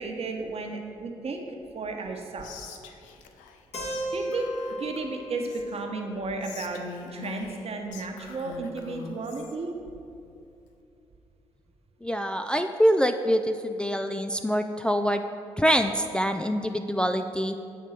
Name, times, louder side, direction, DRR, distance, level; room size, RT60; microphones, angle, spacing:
voice 1, 0.0-2.5 4.1-4.5 4.8-9.7, right 3 dB, 50° right, 3 dB, 1.1 m, -33 dB
Whispering, 2.4-3.6 3.9-4.1 4.3-5.8 6.4-9.6, left 6 dB, 80° left, 0.5 m, -43 dB
Keyboard (musical), 3.7-7.6, equal, 50° left, 1.9 m, -37 dB
voice 2, 12.0-15.2 15.6-17.5, equal, 5° left, 6 dB, 0.4 m, -25 dB
8.4 x 3.6 x 6.5 m, 2.5 s
hypercardioid pair, 50°, 13 cm